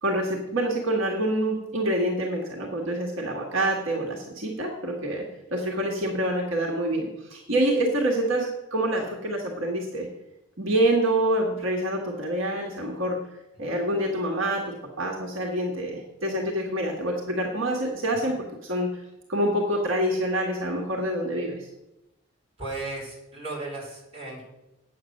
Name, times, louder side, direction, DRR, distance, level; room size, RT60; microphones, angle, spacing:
voice 1, 0.0-5.2 5.5-10.1 10.6-13.2 13.6-18.4 18.6-18.9 19.3-21.7, right 1 dB, 70° right, 0 dB, 1.7 m, -26 dB
voice 2, 22.6-24.4, right 2 dB, 30° right, -5 dB, 4.6 m, -36 dB
8.7 x 8.1 x 6.5 m, 0.93 s
head